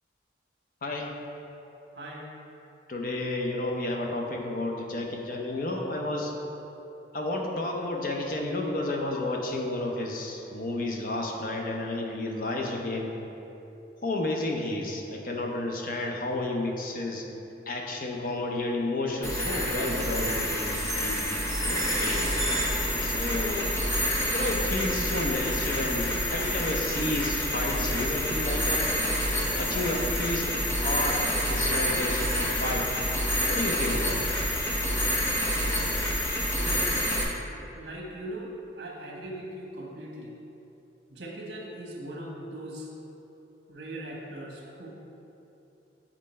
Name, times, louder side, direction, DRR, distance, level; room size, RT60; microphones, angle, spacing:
voice 1, 0.8-1.1 2.9-6.3 7.1-13.1 14.0-17.3 17.7-21.3 21.6-22.2 23.0-23.7 24.3-29.0 29.5-31.2 31.5-32.9 33.5-34.4, left 2 dB, 50° left, 0 dB, 0.7 m, -31 dB
sound 1, 19.2-37.2, equal, 15° left, 0.8 m, -28 dB
voice 2, 36.5-37.0 37.7-38.5 38.8-40.3 41.1-42.9 43.7-44.9, right 1 dB, 65° right, -2 dB, 1.3 m, -39 dB
7.5 x 4.4 x 4.3 m, 3.0 s
head